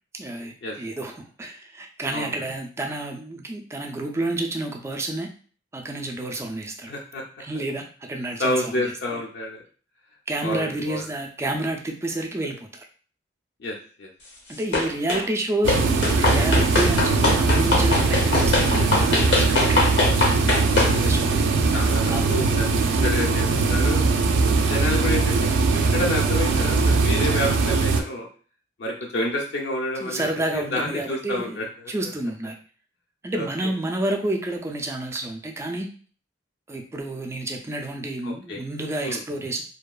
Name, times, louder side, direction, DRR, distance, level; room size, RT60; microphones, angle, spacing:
voice 1, 0.1-5.3 5.7-6.9 7.4-9.2 10.3-12.9 14.5-19.9 20.9-21.6 22.1-22.3 30.0-31.6 31.9-32.5 33.2-35.9 36.7-39.6, right 1 dB, 15° right, 3 dB, 0.3 m, -29 dB
voice 2, 6.9-7.2 8.4-9.6 10.4-11.0 13.6-14.1 20.8-21.4 21.7-22.7 23.0-24.1 24.7-28.3 28.8-31.9 33.3-33.7 38.2-38.6 39.0-39.2, left 1 dB, 65° left, -2 dB, 0.5 m, -29 dB
sound 1, 14.7-15.3 15.7-21.0, left 3 dB, 85° left, 0.9 m, -22 dB
sound 2, 15.6-28.0, right 4 dB, 90° right, 0.3 m, -21 dB
2.8 x 2.2 x 2.3 m, 0.41 s
head